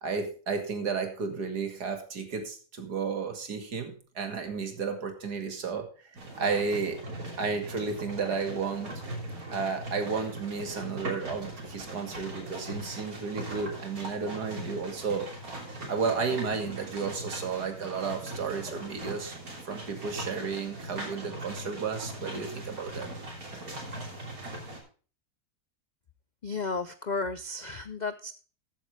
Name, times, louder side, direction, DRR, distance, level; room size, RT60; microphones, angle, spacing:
voice 1, 0.0-5.9 6.4-7.0 7.4-9.0 9.5-15.3 15.9-19.4 19.7-23.1, right 5 dB, 85° right, 6 dB, 2.6 m, -32 dB
sound 1, 6.2-24.8, right 1 dB, 65° right, 3.6 m, -40 dB
voice 2, 26.4-28.3, left 3 dB, 65° left, 13 dB, 0.4 m, -33 dB
14.0 x 8.6 x 3.3 m, 0.39 s
omnidirectional pair, 1.7 m